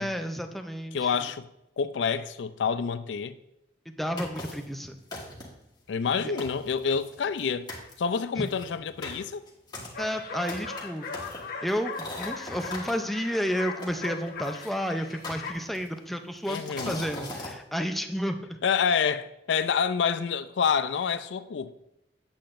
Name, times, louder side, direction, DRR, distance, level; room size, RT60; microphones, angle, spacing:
voice 1, 0.0-1.1 3.9-5.0 6.2-6.3 8.4-8.5 10.0-11.1 11.6-18.6, equal, ahead, 0.5 m, -31 dB
voice 2, 0.9-1.5 1.8-3.4 5.9-7.7 8.0-9.4 16.5-17.0 18.6-21.7, left 6 dB, 80° left, 0.4 m, -27 dB
sound 1, 4.2-4.7 5.1-5.7 6.1-6.2 6.4-7.4 7.7-7.9 8.5-12.9 13.8-14.7 15.2-16.0 16.5-17.6, left 2 dB, 25° left, 1.4 m, -40 dB
sound 2, 9.9-15.5, left 4 dB, 55° left, 1.0 m, -39 dB
8.5 x 7.7 x 2.5 m
head